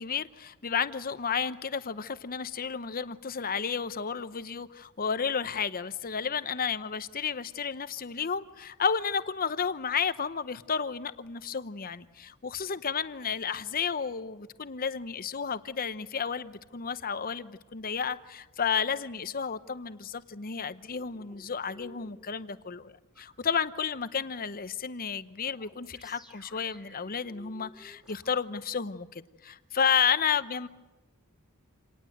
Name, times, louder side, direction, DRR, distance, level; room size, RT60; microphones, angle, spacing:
voice 1, 0.0-30.7, left 6 dB, 40° left, 0.8 m, -32 dB
sound 1, 20.9-22.3 23.1-23.2 25.5-28.4, left 1 dB, ahead, 2.8 m, -54 dB
27.0 x 19.0 x 7.8 m
head